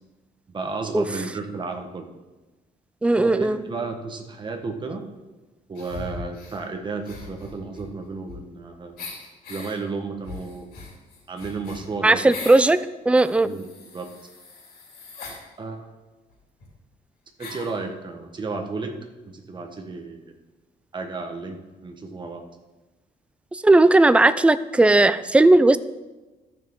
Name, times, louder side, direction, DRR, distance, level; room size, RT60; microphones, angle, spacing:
voice 1, 0.5-2.1 3.2-5.1 5.7-9.0 9.5-10.7 11.3-12.3 13.4-14.1 15.6-15.9 17.4-18.9 19.3-20.3 20.9-22.4, right 4 dB, 30° right, 4 dB, 1.3 m, -33 dB
voice 2, 3.0-3.6 12.0-12.8 13.1-13.5 23.5-25.8, right 2 dB, 5° right, 14 dB, 0.4 m, -16 dB
sound 1, 5.8-6.6 7.0-8.6 9.0-9.7 10.2-12.7 13.1-15.4 16.3-16.4 16.6-16.7 17.4-17.8, left 3 dB, 80° left, 3.6 m, -40 dB
13.5 x 6.3 x 3.7 m, 1.2 s
cardioid pair, 110°, 16 cm